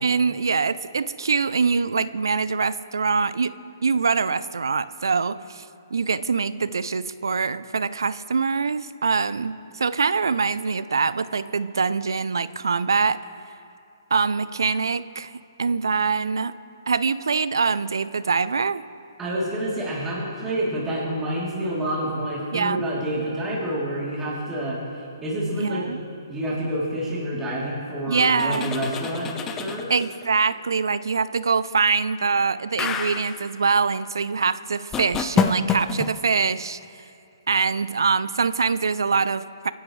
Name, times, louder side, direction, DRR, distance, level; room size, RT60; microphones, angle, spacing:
voice 1, 0.0-3.5 3.8-5.6 5.9-13.2 14.1-15.3 15.6-16.6 16.9-18.8 22.5-22.8 25.6-26.0 28.1-28.8 29.9-36.8 37.5-39.7, right 5 dB, 80° right, 16 dB, 0.5 m, -24 dB
voice 2, 19.2-24.8 25.2-26.0 26.3-29.9, right 1 dB, 10° right, -7 dB, 3.3 m, -28 dB
sound 1, 28.3-30.2 32.8-33.4 34.9-36.1, left 6 dB, 15° left, 0.7 m, -27 dB
26.0 x 11.5 x 3.3 m, 2.5 s
hypercardioid pair, 145°, 2 cm